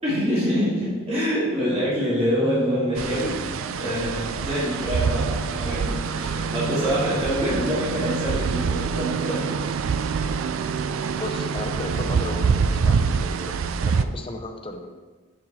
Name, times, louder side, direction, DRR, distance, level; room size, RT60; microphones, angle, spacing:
voice 1, 0.0-3.4 3.8-9.5, equal, 30° right, -9 dB, 2.5 m, -25 dB
sound 1, 2.2-12.4, left 1 dB, 40° left, 1.7 m, -45 dB
sound 2, 3.0-14.0, right 5 dB, 85° right, 0.4 m, -25 dB
voice 2, 5.0-5.3 11.1-15.0, left 2 dB, 25° left, 4 dB, 0.7 m, -35 dB
7.4 x 6.7 x 4.2 m, 1.3 s
head